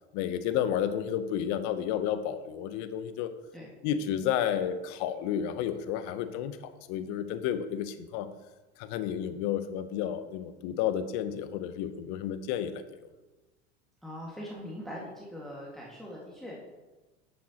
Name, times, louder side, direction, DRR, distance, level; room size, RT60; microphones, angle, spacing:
voice 1, 0.1-3.3 3.8-8.3 8.8-12.8, left 9 dB, 55° left, 11 dB, 0.8 m, -31 dB
voice 2, 14.0-16.6, equal, ahead, -4 dB, 1.8 m, -41 dB
10.5 x 7.3 x 2.9 m, 1.1 s
hypercardioid pair, 80°, 35 cm